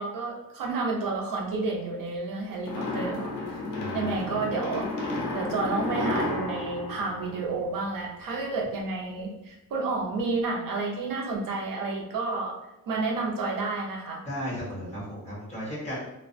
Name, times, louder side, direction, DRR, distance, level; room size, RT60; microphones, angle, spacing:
voice 1, 0.0-3.3 3.9-4.9 5.3-12.6 12.9-14.2, right 3 dB, 70° right, 0 dB, 0.6 m, -30 dB
sound 1, 2.6-8.0, left 2 dB, 60° left, 0.6 m, -32 dB
voice 2, 3.7-4.2 14.2-16.1, equal, 20° left, -7 dB, 1.0 m, -35 dB
2.4 x 2.1 x 2.5 m, 0.88 s
wide cardioid pair, 180°, 35 cm